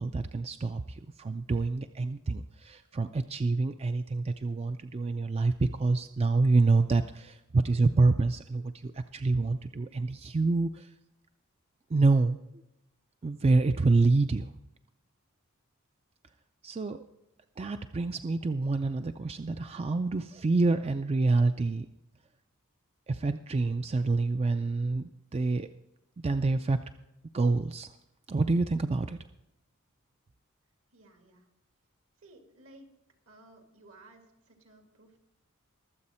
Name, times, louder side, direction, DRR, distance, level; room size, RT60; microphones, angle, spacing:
voice 1, 0.0-10.9 11.9-12.4 13.2-14.5 16.6-17.0 17.6-21.9 23.1-25.7 26.2-26.8 27.3-27.9 28.3-29.2, right 3 dB, 30° right, 9 dB, 0.4 m, -27 dB
voice 2, 30.9-31.5 32.2-32.9 33.3-35.2, right 2 dB, 70° right, 4 dB, 2.2 m, -56 dB
22.5 x 7.6 x 4.3 m, 0.88 s
head